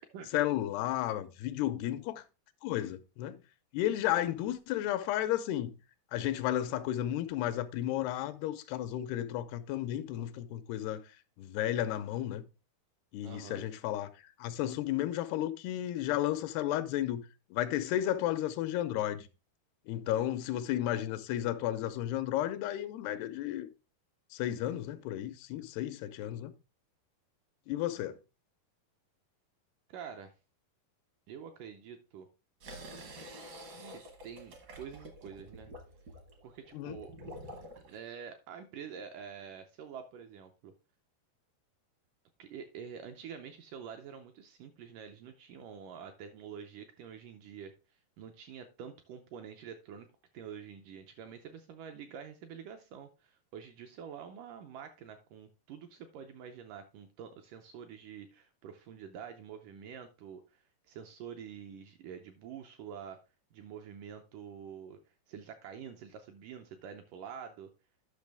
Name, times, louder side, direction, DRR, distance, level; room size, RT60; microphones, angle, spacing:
voice 1, 0.3-2.2 2.6-3.4 3.7-5.7 6.1-11.0 11.4-12.4 13.1-14.1 14.4-17.2 17.5-19.3 19.9-23.7 24.3-26.5 27.7-28.2 36.7-37.0, left 12 dB, 90° left, 2.7 m, -33 dB
voice 2, 13.2-13.6 29.9-30.3 31.3-32.3 33.9-35.7 36.4-37.1 37.8-40.7 42.4-47.7 48.2-50.1 50.3-63.2 63.5-65.0 65.3-67.7, right 7 dB, 80° right, 1.9 m, -47 dB
sound 1, 32.6-38.0, right 1 dB, 65° right, 1.1 m, -48 dB
10.5 x 5.9 x 3.4 m
omnidirectional pair, 4.5 m